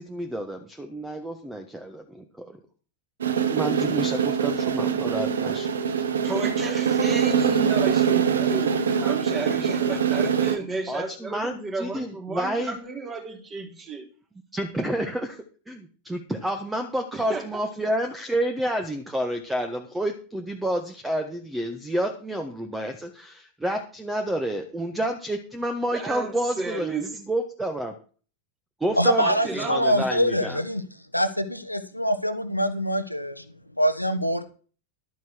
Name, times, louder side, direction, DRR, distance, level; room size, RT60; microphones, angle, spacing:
voice 1, 0.0-2.5 3.4-5.7 10.9-12.8 14.5-15.4 15.7-27.0 27.3-27.9 28.8-30.6, right 1 dB, 5° right, 6 dB, 1.4 m, -29 dB
sound 1, 3.2-10.6, right 7 dB, 65° right, 1.3 m, -23 dB
voice 2, 6.2-14.1 17.1-17.4 25.9-27.1 29.2-30.0, right 3 dB, 25° right, 2 dB, 3.6 m, -33 dB
voice 3, 29.0-30.8 31.1-33.4 33.8-34.4, equal, 90° left, 7 dB, 1.3 m, -24 dB
12.0 x 9.3 x 4.5 m, 0.39 s
figure-of-eight pair, 90°, 0 cm